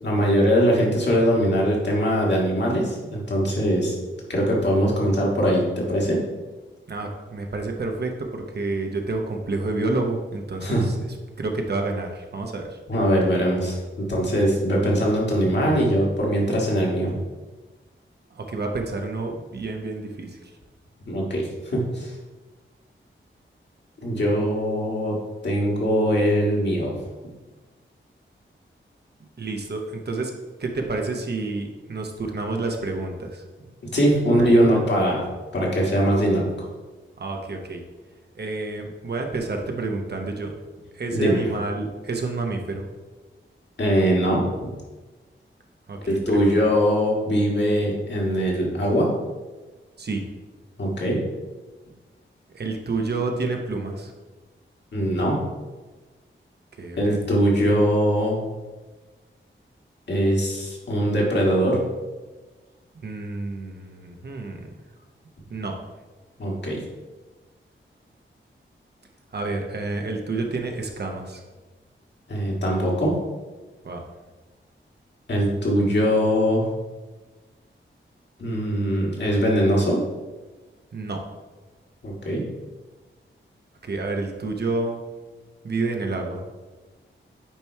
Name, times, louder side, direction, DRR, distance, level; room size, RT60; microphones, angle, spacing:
voice 1, 0.0-3.9 4.3-6.2 10.6-10.8 12.9-17.1 21.1-22.1 24.0-25.2 25.4-27.0 33.9-35.3 35.5-36.7 41.1-41.4 43.8-44.4 46.1-49.1 50.8-51.2 54.9-55.4 57.0-58.4 60.1-61.8 66.4-66.8 72.3-73.2 75.3-76.6 78.4-80.0 82.0-82.4, equal, 60° left, -3 dB, 1.9 m, -21 dB
voice 2, 6.9-12.8 18.3-20.5 29.4-30.3 30.6-33.4 34.2-34.8 37.2-37.8 38.3-40.5 40.9-42.9 45.9-46.7 50.0-50.2 52.5-54.1 56.8-57.2 63.0-64.7 65.5-65.8 69.3-71.4 73.8-74.0 80.9-81.2 83.8-85.0 85.6-86.4, right 3 dB, 55° right, 3 dB, 0.9 m, -29 dB
8.8 x 3.1 x 4.5 m, 1.2 s
wide cardioid pair, 125°, 21 cm